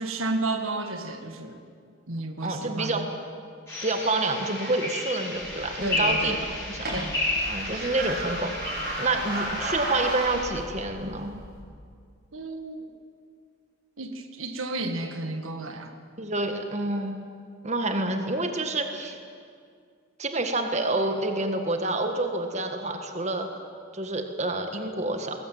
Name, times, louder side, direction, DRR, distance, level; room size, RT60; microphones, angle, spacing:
voice 1, 0.0-1.6 2.1-3.1 5.8-6.4 6.9-7.1 12.3-12.9 14.0-15.9, right 2 dB, 80° right, 6 dB, 1.9 m, -32 dB
voice 2, 2.4-3.0 3.8-7.1 7.5-8.7 9.0-11.3 16.2-17.2 17.6-19.2 20.2-23.6 23.9-25.4, right 2 dB, 30° right, 5 dB, 1.7 m, -28 dB
sound 1, 3.7-10.4, left 2 dB, 10° left, 7.6 m, -32 dB
sound 2, 5.3-11.6, right 1 dB, 50° right, 5.7 m, -35 dB
21.5 x 19.0 x 9.3 m, 2.2 s
head